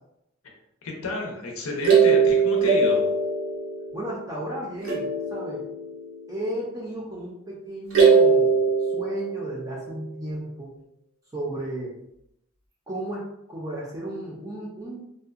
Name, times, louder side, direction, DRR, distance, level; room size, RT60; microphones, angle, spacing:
voice 1, 0.8-3.0, left 2 dB, 85° left, 1 dB, 0.5 m, -31 dB
sound 1, 1.8-4.4 4.8-6.3 7.9-9.9, right 5 dB, 80° right, 0.7 m, -21 dB
voice 2, 3.9-5.6 6.3-10.7 11.3-11.9 12.9-15.0, right 1 dB, 15° right, -4 dB, 0.4 m, -34 dB
2.6 x 2.1 x 2.4 m, 0.80 s
head